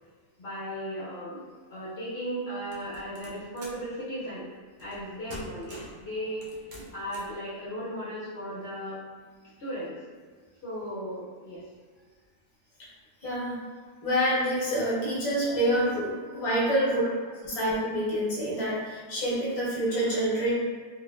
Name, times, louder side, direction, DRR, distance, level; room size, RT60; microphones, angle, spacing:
voice 1, 0.4-1.4 1.7-4.5 4.8-6.6 6.9-9.0 9.6-10.0 10.6-11.6 15.4-15.7 16.3-16.5 19.9-20.2, equal, 55° left, -9 dB, 0.9 m, -36 dB
sound 1, 2.7-3.9 4.8-5.0 5.3-6.0 6.4-7.4, right 1 dB, 75° right, 0.4 m, -45 dB
voice 2, 13.2-13.5 14.0-17.0 17.4-20.5, equal, 30° left, -8 dB, 0.8 m, -27 dB
3.1 x 2.4 x 2.2 m, 1.5 s
omnidirectional pair, 1.5 m